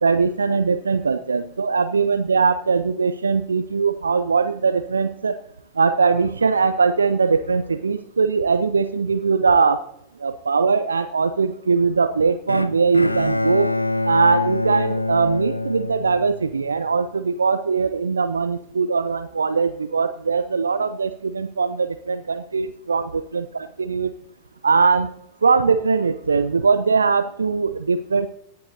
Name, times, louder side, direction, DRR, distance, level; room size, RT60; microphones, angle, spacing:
voice 1, 0.0-5.4 5.8-9.8 10.2-13.7 14.0-24.1 24.6-25.1 25.4-28.3, right 5 dB, 75° right, 11 dB, 0.5 m, -21 dB
Bowed string instrument, 12.5-16.7, left 2 dB, 85° left, 0.5 m, -25 dB
17.5 x 10.5 x 2.7 m, 0.79 s
figure-of-eight pair, 90°, 0 cm